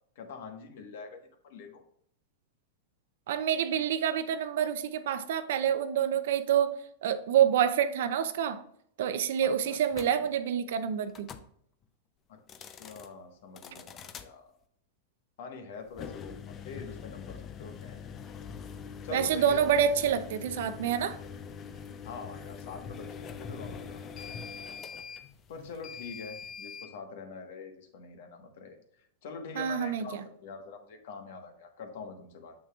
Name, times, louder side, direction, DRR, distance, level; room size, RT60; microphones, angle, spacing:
voice 1, 0.1-1.2 1.4-1.8 9.4-10.3 12.3-14.4 15.4-18.1 19.0-19.6 22.0-24.1 25.5-32.5, left 5 dB, 70° left, 5 dB, 1.3 m, -45 dB
voice 2, 3.3-8.6 9.0-11.3 19.1-21.2 29.6-30.2, right 9 dB, 70° right, 11 dB, 0.6 m, -27 dB
sound 1, 9.9-10.1 11.1-11.5 12.4-13.1 13.6-14.3 15.9-26.9, left 6 dB, 30° left, 0.6 m, -43 dB
7.2 x 6.1 x 2.4 m, 0.68 s
hypercardioid pair, 120°, 0 cm